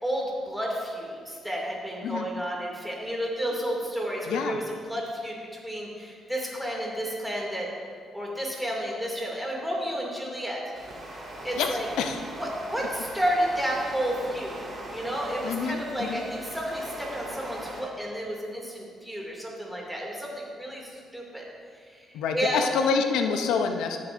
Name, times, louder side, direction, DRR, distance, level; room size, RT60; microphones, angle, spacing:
voice 1, 0.0-7.7 8.1-10.6 11.4-11.9 12.4-14.6 14.9-21.4 21.8-22.1 22.3-22.6, equal, 5° right, -3 dB, 2.4 m, -31 dB
voice 2, 4.3-4.6 11.6-12.2 15.4-16.2 22.1-24.0, left 5 dB, 90° left, 5 dB, 0.5 m, -27 dB
sound 1, 10.7-17.8, right 1 dB, 40° right, 2.5 m, -40 dB
13.5 x 7.5 x 2.6 m, 2.1 s
cardioid pair, 90°, 0 cm